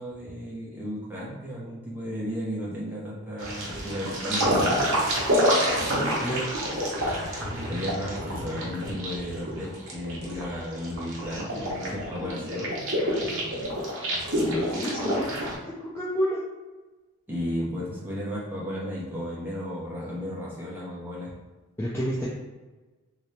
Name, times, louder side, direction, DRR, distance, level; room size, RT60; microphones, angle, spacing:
voice 1, 0.0-4.8 7.7-12.7 17.3-21.3, equal, 10° right, -6 dB, 0.8 m, -34 dB
sound 1, 3.4-15.5, equal, 60° right, 0.9 m, -28 dB
voice 2, 14.4-15.2 15.7-16.4 21.8-22.3, equal, 10° left, -7 dB, 0.4 m, -29 dB
3.0 x 2.8 x 3.2 m, 1.2 s
head